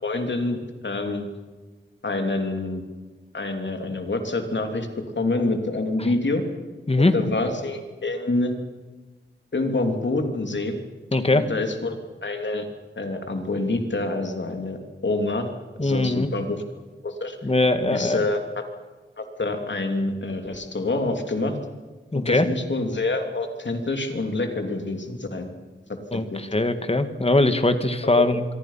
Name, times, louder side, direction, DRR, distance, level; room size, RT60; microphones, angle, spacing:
voice 1, 0.0-1.3 2.0-2.8 3.3-4.9 5.1-6.4 7.0-8.5 9.5-10.8 11.3-12.0 12.2-12.7 13.0-15.5 15.8-16.6 17.0-17.4 17.9-18.4 19.2-21.6 22.1-25.5 26.1-26.4 28.1-28.2, left 2 dB, 65° left, 5 dB, 3.2 m, -26 dB
voice 2, 6.9-7.2 11.1-11.5 15.8-16.3 17.4-18.2 22.1-22.5 26.1-28.5, left 2 dB, 30° left, 9 dB, 2.1 m, -21 dB
27.0 x 23.0 x 5.9 m, 1.3 s
wide cardioid pair, 70°, 20 cm